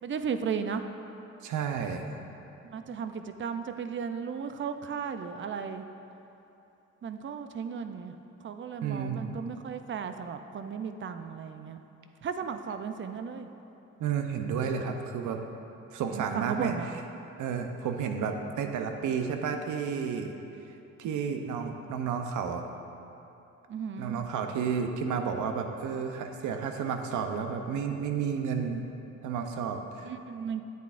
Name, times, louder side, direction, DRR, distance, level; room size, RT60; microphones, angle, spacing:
voice 1, 0.0-0.8 2.6-5.8 7.0-8.1 8.4-11.8 12.2-13.5 16.1-17.0 23.7-24.2 30.0-30.6, right 6 dB, 40° right, 8 dB, 0.5 m, -35 dB
voice 2, 1.4-2.0 8.8-9.3 14.0-15.4 15.9-16.8 17.4-20.3 21.0-22.6 24.0-28.8 29.2-30.1, right 6 dB, 80° right, 5 dB, 0.7 m, -31 dB
9.1 x 8.3 x 2.5 m, 2.9 s
cardioid pair, 90°, 30 cm